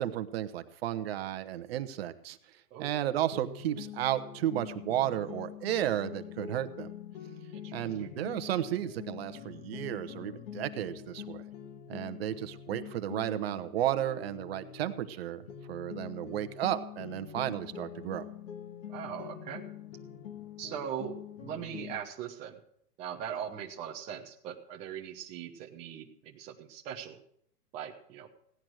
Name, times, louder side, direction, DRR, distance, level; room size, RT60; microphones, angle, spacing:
voice 1, 0.0-2.4 2.8-6.9 7.7-11.4 11.9-18.2, right 12 dB, 40° right, 11 dB, 1.0 m, -33 dB
sound 1, 3.3-15.2 15.5-22.0, left 9 dB, 50° left, 1.8 m, -45 dB
voice 2, 7.5-8.1 18.9-19.6 20.6-22.6 23.0-27.2 27.7-28.3, right 9 dB, 15° right, 1 dB, 0.7 m, -40 dB
16.5 x 10.5 x 6.3 m, 0.67 s
hypercardioid pair, 145°, 47 cm